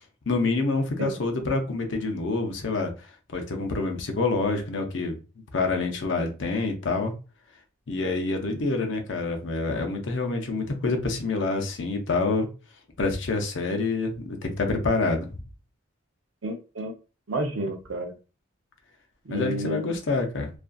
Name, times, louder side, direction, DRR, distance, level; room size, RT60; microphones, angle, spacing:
voice 1, 0.3-2.9 3.3-5.2 5.5-7.1 7.9-12.5 13.0-15.4 19.3-20.5, left 3 dB, 65° left, 4 dB, 0.6 m, -27 dB
voice 2, 16.4-16.9 17.3-18.1 19.3-19.8, right 1 dB, 85° right, 4 dB, 0.6 m, -30 dB
2.5 x 2.4 x 2.2 m, 0.33 s
head